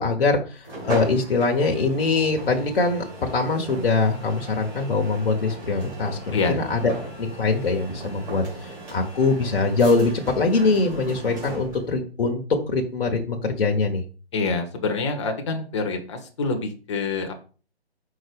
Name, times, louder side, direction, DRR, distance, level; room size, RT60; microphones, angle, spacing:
voice 1, 0.0-6.9 7.2-14.0, left 3 dB, 60° left, 2 dB, 1.1 m, -23 dB
sound 1, 0.6-11.9, right 1 dB, 10° right, 1.6 m, -37 dB
voice 2, 14.3-17.4, left 4 dB, 30° left, 4 dB, 1.1 m, -26 dB
4.7 x 3.9 x 5.2 m, 0.37 s
figure-of-eight pair, 150°, 32 cm